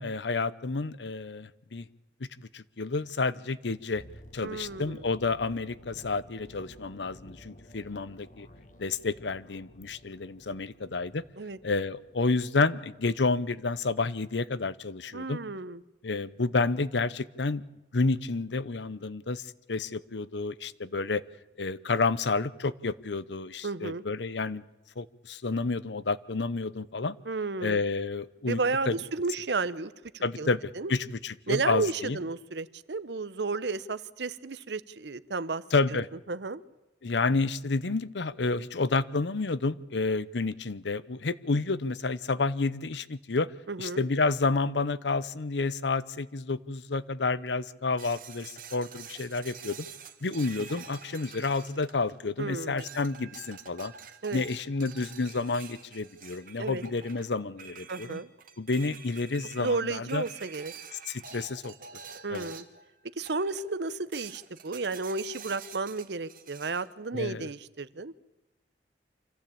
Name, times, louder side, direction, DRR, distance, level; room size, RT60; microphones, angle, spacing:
voice 1, 0.0-1.9 2.4-4.0 4.3-8.5 8.8-11.2 11.6-15.4 16.0-17.6 17.9-21.2 21.6-24.6 25.0-27.2 27.6-28.6 28.9-29.0 30.2-32.2 35.7-36.1 37.0-43.5 43.8-49.9 50.2-53.9 54.3-58.2 58.6-60.2 61.1-61.7 62.3-62.5 67.1-67.5, left 3 dB, 80° left, 17 dB, 0.8 m, -30 dB
sound 1, 3.9-13.9 14.2-14.4, left 1 dB, 45° left, 1.5 m, -53 dB
voice 2, 4.4-5.1 11.4-11.6 15.1-15.8 23.6-24.0 27.2-27.8 28.4-30.5 30.8-30.9 31.5-35.6 36.3-36.6 43.7-44.0 52.4-52.9 54.2-54.4 56.6-56.8 57.9-58.3 59.6-60.7 62.2-62.6 63.2-68.1, right 3 dB, 70° right, 16 dB, 0.9 m, -32 dB
sound 2, 48.0-52.4 52.8-62.9 63.3-63.8 64.1-66.9, right 6 dB, 50° right, 1.7 m, -47 dB
25.5 x 15.0 x 8.6 m, 1.0 s
head